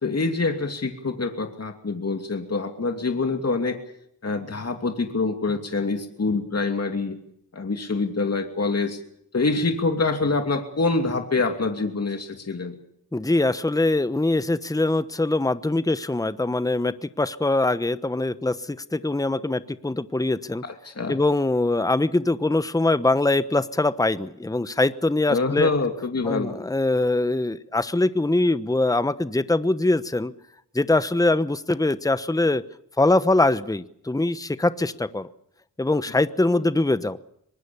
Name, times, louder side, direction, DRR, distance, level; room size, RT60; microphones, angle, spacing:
voice 1, 0.0-3.8 4.2-7.2 7.5-9.0 9.3-12.8 20.6-21.2 25.3-26.6, left 3 dB, 40° left, 5 dB, 2.8 m, -25 dB
voice 2, 13.1-20.6 21.1-25.7 26.2-30.3 30.7-32.6 33.0-35.3 35.8-37.2, left 2 dB, 10° left, 14 dB, 1.1 m, -23 dB
24.5 x 19.5 x 7.2 m, 0.74 s
cardioid pair, 50°, 39 cm